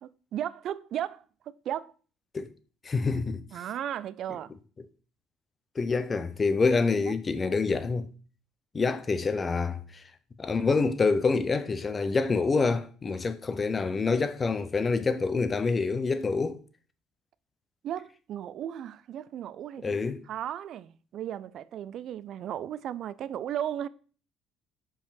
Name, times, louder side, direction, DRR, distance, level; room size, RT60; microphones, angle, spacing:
voice 1, 0.0-1.9 3.5-4.5 7.1-7.2 17.8-20.0 20.3-23.9, right 10 dB, 60° right, 0.4 m, -35 dB
voice 2, 2.8-3.4 5.8-8.1 8.7-10.0 10.4-16.6 19.8-20.2, left 4 dB, 30° left, 0.8 m, -27 dB
5.2 x 4.9 x 5.1 m
hypercardioid pair, 65°, 0 cm